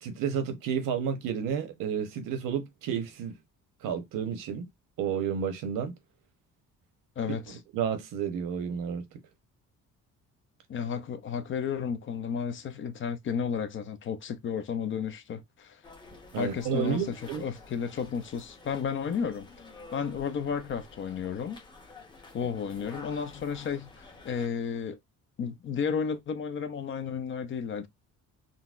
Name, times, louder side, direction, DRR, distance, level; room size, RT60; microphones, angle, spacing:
voice 1, 0.0-3.4 3.8-4.7 5.0-5.9 7.5-9.0 16.3-17.4, right 7 dB, 85° right, 0.9 m, -31 dB
voice 2, 7.2-7.6 10.7-15.8 16.4-19.5 19.9-21.6 22.3-25.0 25.4-27.9, left 6 dB, 40° left, 0.5 m, -33 dB
sound 1, 15.8-24.5, left 3 dB, 15° left, 0.8 m, -50 dB
3.8 x 2.1 x 2.4 m
cardioid pair, 140°, 31 cm